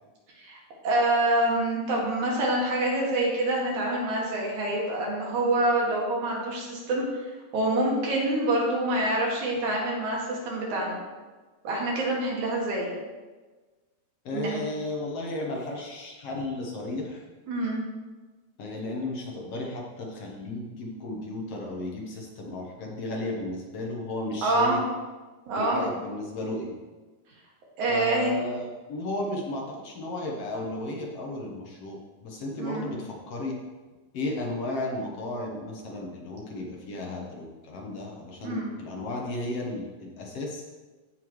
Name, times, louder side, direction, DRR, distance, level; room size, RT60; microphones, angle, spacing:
voice 1, 0.8-7.0 7.5-10.9 11.6-12.9 14.3-14.6 17.5-17.8 24.4-24.8 25.5-25.8 27.8-28.3 32.6-32.9 38.4-38.7, right 1 dB, 80° right, -3 dB, 3.4 m, -26 dB
voice 2, 14.3-17.2 18.6-24.8 25.5-26.8 27.9-33.5 34.1-40.6, left 1 dB, 60° left, 0 dB, 1.9 m, -34 dB
15.0 x 5.7 x 3.1 m, 1.3 s
omnidirectional pair, 3.4 m